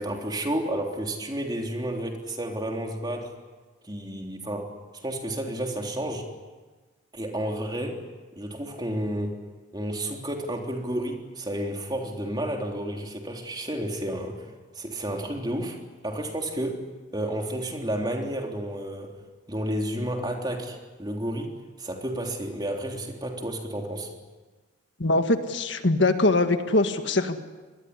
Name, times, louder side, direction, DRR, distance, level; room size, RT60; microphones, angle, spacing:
voice 1, 0.0-3.3 3.8-4.7 5.0-6.3 7.1-8.0 8.3-9.4 9.7-15.8 16.0-16.8 17.1-19.1 19.5-24.1, right 1 dB, 20° right, 1 dB, 3.6 m, -31 dB
voice 2, 25.0-27.4, left 2 dB, 70° left, 7 dB, 1.8 m, -22 dB
26.0 x 20.5 x 9.9 m, 1.3 s
head